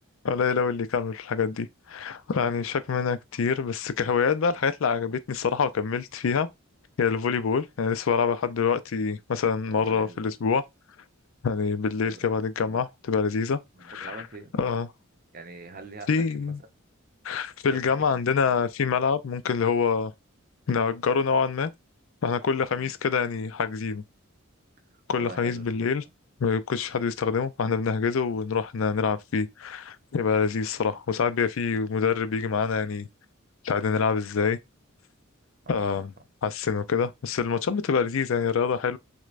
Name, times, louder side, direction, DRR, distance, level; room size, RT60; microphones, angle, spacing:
voice 1, 0.2-6.5 7.0-10.6 11.4-14.1 14.6-14.9 16.1-16.6 17.2-20.1 20.7-21.7 22.2-24.0 25.1-26.0 26.4-33.1 33.6-34.6 35.7-36.1 36.4-39.0, left 5 dB, 70° left, 0.4 m, -26 dB
voice 2, 9.7-10.3 12.0-12.3 12.6-12.8 13.7-14.6 15.3-16.5 17.7-18.2 25.2-25.9 35.6-36.1, right 3 dB, 45° right, 0.6 m, -44 dB
6.2 x 2.2 x 2.4 m
head